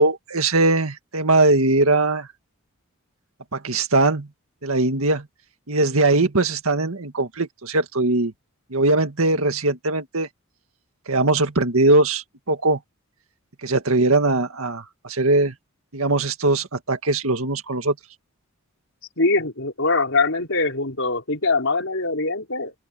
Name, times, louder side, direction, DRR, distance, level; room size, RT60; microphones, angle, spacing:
voice 1, 0.0-2.3 3.5-4.3 4.6-5.3 5.7-8.3 8.7-10.3 11.1-12.8 13.6-15.5 15.9-17.9, right 2 dB, 75° right, 2.0 m, -20 dB
voice 2, 19.2-22.7, left 3 dB, 65° left, 5.8 m, -22 dB
head